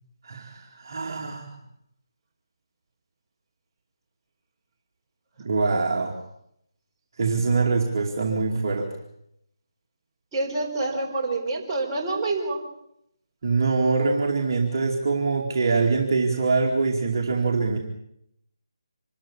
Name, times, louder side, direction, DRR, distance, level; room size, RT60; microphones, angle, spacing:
voice 1, 0.2-1.5 5.4-6.2 7.2-8.9 13.4-17.8, right 4 dB, 45° right, 0 dB, 2.5 m, -24 dB
voice 2, 10.3-12.6, right 2 dB, 20° right, -3 dB, 4.6 m, -27 dB
25.5 x 13.5 x 8.5 m, 0.76 s
figure-of-eight pair, 160°, 3 cm